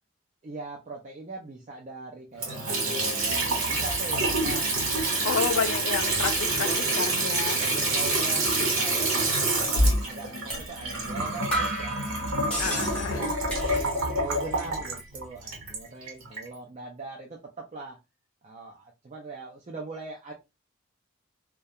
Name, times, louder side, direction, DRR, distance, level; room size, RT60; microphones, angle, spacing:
voice 1, 0.4-4.8 5.1-5.6 6.6-6.8 7.6-12.0 12.4-18.0 18.4-20.3, right 3 dB, 35° right, 0.4 m, -41 dB
Water tap faucet / Sink (filling or washing) / Trickle dribble, 2.4-16.5, right 2 dB, 90° right, 0.9 m, -27 dB
voice 2, 5.2-7.6 12.6-13.3, left 6 dB, 80° left, 0.4 m, -30 dB
sound 1, 9.7-9.9 10.5-10.7 11.0-11.1 11.5-14.1 14.4-15.0, equal, 5° left, 0.6 m, -34 dB
2.3 x 2.1 x 2.7 m
head